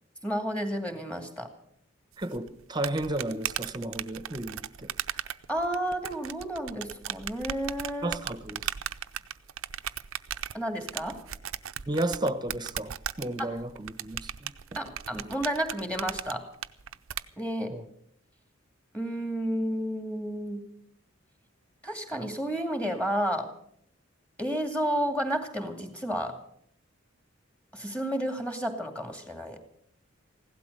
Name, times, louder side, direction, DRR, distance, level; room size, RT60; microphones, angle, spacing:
voice 1, 0.2-1.5 5.1-5.2 5.5-8.2 10.5-11.2 13.4-13.5 14.8-16.5 17.4-17.7 18.9-20.7 21.8-23.5 24.4-26.4 27.7-29.6, equal, 5° left, 5 dB, 2.3 m, -31 dB
voice 2, 2.2-4.9 8.0-8.7 11.9-14.5 17.7-17.9, right 1 dB, 20° right, 12 dB, 1.0 m, -33 dB
sound 1, 2.2-17.2, right 10 dB, 85° right, 0.6 m, -37 dB
16.0 x 12.0 x 6.7 m, 0.69 s
head